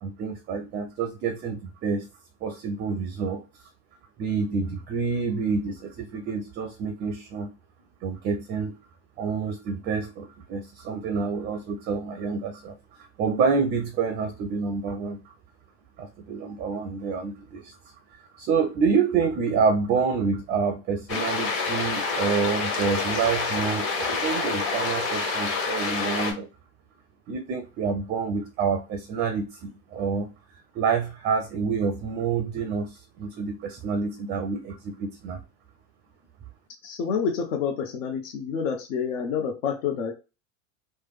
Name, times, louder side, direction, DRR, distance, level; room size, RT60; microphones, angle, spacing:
voice 1, 0.0-2.1 2.4-3.4 4.2-7.5 8.0-8.7 9.2-12.8 13.2-15.2 16.0-17.8 18.3-26.5 27.3-30.3 30.7-35.4, right 5 dB, 25° right, 7 dB, 0.4 m, -28 dB
sound 1, 21.1-26.3, left 4 dB, 30° left, 1.3 m, -27 dB
voice 2, 36.8-40.1, left 6 dB, 70° left, 3 dB, 0.8 m, -28 dB
3.2 x 2.2 x 3.4 m, 0.29 s
hypercardioid pair, 115°, 40 cm